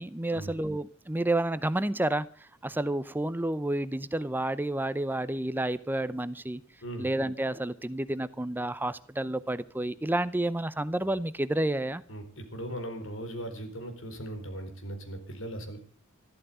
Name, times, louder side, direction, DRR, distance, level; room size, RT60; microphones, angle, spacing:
voice 1, 0.0-2.3 2.6-6.6 7.0-12.0, right 1 dB, 10° right, 15 dB, 0.6 m, -30 dB
voice 2, 12.1-15.8, right 1 dB, 70° left, 5 dB, 4.3 m, -38 dB
13.5 x 12.5 x 6.8 m, 0.41 s
head